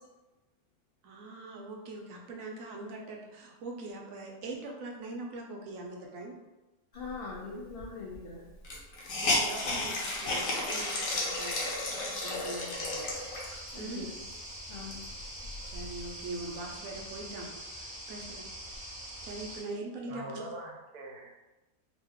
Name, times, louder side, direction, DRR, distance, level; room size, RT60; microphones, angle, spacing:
voice 1, 1.0-6.3 9.2-11.6 11.9-13.1 13.8-14.1 15.7-18.5 19.2-20.4, right 2 dB, 70° right, 0 dB, 0.9 m, -42 dB
voice 2, 6.9-8.4 13.7-14.1 14.7-15.0, left 4 dB, 85° left, -4 dB, 0.5 m, -41 dB
Hiss, 7.8-7.9 8.1-8.2 8.6-13.7 14.2-14.3 14.7-16.1, left 2 dB, 65° left, 1.0 m, -33 dB
sound 1, 12.7-19.6, right 1 dB, 10° right, 0.3 m, -44 dB
voice 3, 20.1-21.3, right 1 dB, 90° right, -2 dB, 1.2 m, -42 dB
3.0 x 2.1 x 3.4 m, 1.1 s
omnidirectional pair, 1.6 m